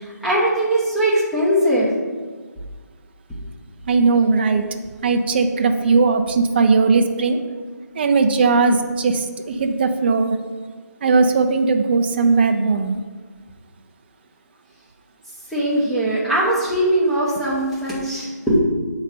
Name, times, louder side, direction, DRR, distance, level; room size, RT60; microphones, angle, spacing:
voice 1, 0.2-1.9 15.5-18.6, right 1 dB, ahead, -8 dB, 0.9 m, -20 dB
voice 2, 3.9-4.6 5.0-7.4 8.0-10.4 11.0-13.0, right 4 dB, 35° right, 5 dB, 0.4 m, -18 dB
6.4 x 4.0 x 5.5 m, 1.4 s
figure-of-eight pair, 160°, 10 cm